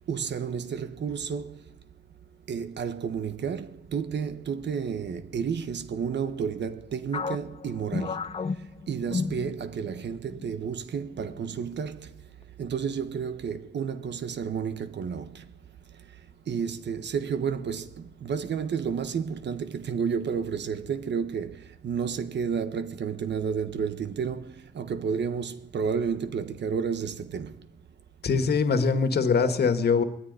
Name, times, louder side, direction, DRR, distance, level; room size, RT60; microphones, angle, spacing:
voice 1, 0.1-1.8 2.5-12.3 12.6-15.5 15.9-27.7, right 6 dB, 75° right, 1.3 m, -31 dB
sound 1, 7.1-10.0 10.3-10.5 11.1-11.6, left 5 dB, 35° left, 0.7 m, -33 dB
voice 2, 28.2-30.0, left 5 dB, 65° left, 1.9 m, -23 dB
21.0 x 14.0 x 9.6 m
wide cardioid pair, 175°, 18 cm